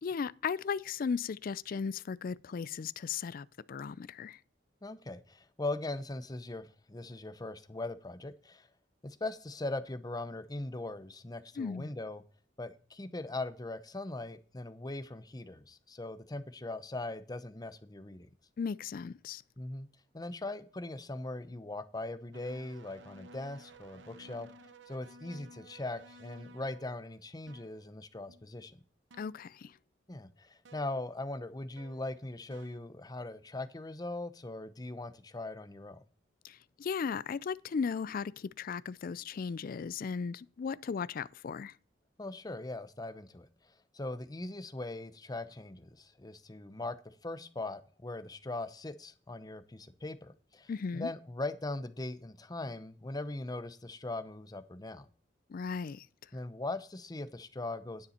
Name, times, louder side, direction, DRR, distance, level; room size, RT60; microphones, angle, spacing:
voice 1, 0.0-4.4 11.6-11.9 18.6-19.4 29.2-29.8 36.4-41.7 50.7-51.1 55.5-56.1, left 6 dB, 50° left, 0.4 m, -36 dB
voice 2, 4.8-8.7 9.0-12.2 12.6-18.3 19.6-19.9 20.1-24.5 24.9-28.8 30.1-36.0 42.2-43.5 43.9-47.0 47.2-55.1 56.3-58.1, left 2 dB, 20° left, 0.8 m, -40 dB
sound 1, 22.3-27.2 27.5-27.8 28.3-28.5 29.1-29.5 30.6-30.9 31.8-32.1 32.5-32.8, right 2 dB, 80° right, 1.0 m, -55 dB
9.9 x 6.9 x 4.3 m
head